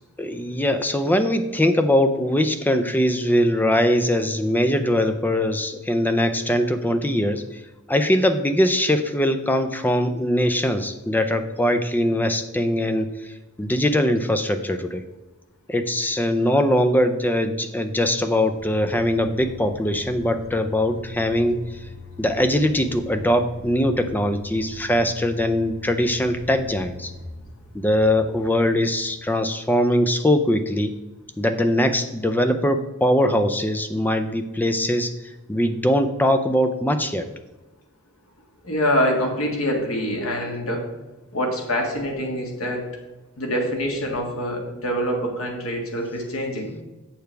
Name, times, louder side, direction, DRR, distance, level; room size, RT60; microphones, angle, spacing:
voice 1, 0.2-7.4 7.9-13.1 13.6-15.0 15.7-21.6 22.2-27.1 27.7-30.9 31.4-35.1 35.5-37.2, left 1 dB, 10° left, 8 dB, 0.5 m, -21 dB
sound 1, 18.6-29.2, left 4 dB, 35° left, 1.6 m, -42 dB
voice 2, 38.6-40.9 41.3-42.8 43.4-46.7, equal, 85° left, 1 dB, 1.7 m, -25 dB
7.8 x 6.8 x 3.4 m, 1.1 s
head